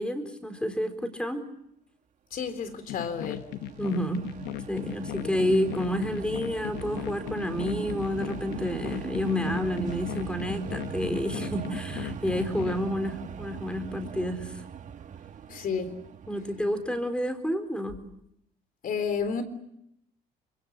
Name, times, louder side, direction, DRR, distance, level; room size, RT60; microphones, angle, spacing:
voice 1, 0.0-1.4 3.8-4.2 4.7-14.6 16.3-18.0, equal, 5° left, 4.2 m, -29 dB
voice 2, 2.3-3.5 5.2-5.3 15.5-15.9 18.8-19.4, left 6 dB, 55° left, 3.8 m, -31 dB
sound 1, 2.8-17.3, right 8 dB, 45° right, 1.3 m, -40 dB
sound 2, 2.9-12.8, left 14 dB, 85° left, 0.9 m, -37 dB
26.5 x 23.0 x 8.6 m
cardioid pair, 110°, 17 cm